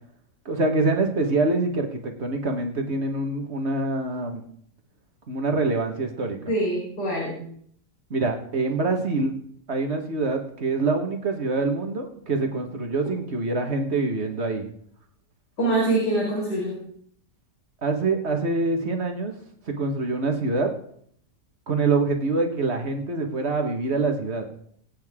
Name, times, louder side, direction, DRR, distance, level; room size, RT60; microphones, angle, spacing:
voice 1, 0.4-4.4 5.3-6.5 8.1-9.3 9.7-14.6 17.8-19.3 19.7-20.7 21.7-24.4, right 3 dB, 40° right, 4 dB, 1.8 m, -25 dB
voice 2, 6.5-7.4 15.6-16.8, right 2 dB, 70° left, -5 dB, 5.4 m, -24 dB
23.0 x 8.9 x 3.7 m, 0.64 s
omnidirectional pair, 1.8 m